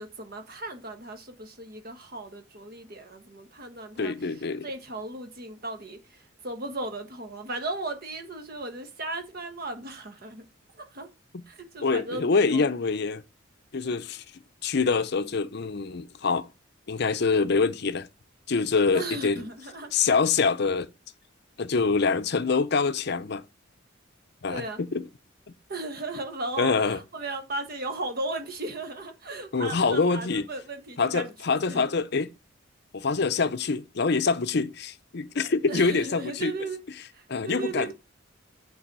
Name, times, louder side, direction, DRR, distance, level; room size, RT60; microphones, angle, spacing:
voice 1, 0.0-4.1 4.6-6.0 6.4-10.5 10.9-11.1 11.5-12.7 18.9-19.9 24.5-24.8 25.7-31.3 31.7-31.9 35.7-36.8 37.1-37.9, right 2 dB, 50° right, 1.4 m, -36 dB
voice 2, 4.0-4.6 11.3-11.4 11.8-13.2 13.7-14.2 14.6-16.5 16.9-18.1 18.5-19.5 19.9-20.9 21.6-23.4 24.4-25.1 26.6-27.0 29.5-30.5 31.0-32.3 32.9-37.0 37.3-37.9, left 4 dB, 55° left, 0.6 m, -25 dB
8.6 x 4.0 x 5.4 m
head